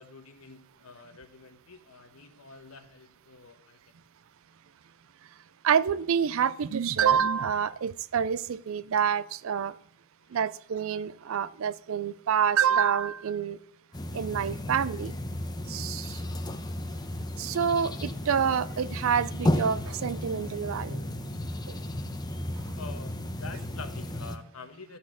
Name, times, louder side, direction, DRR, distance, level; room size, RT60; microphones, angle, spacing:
voice 1, 0.0-3.9 10.2-10.4 22.7-25.0, left 4 dB, 75° left, 1.2 m, -47 dB
voice 2, 5.6-9.7 10.3-13.6 14.1-15.1 15.7-16.2 17.4-21.1 21.7-21.8, right 7 dB, 65° right, 0.4 m, -27 dB
sound 1, 13.9-24.4, left 1 dB, 20° left, 0.7 m, -33 dB
12.5 x 4.3 x 7.4 m
head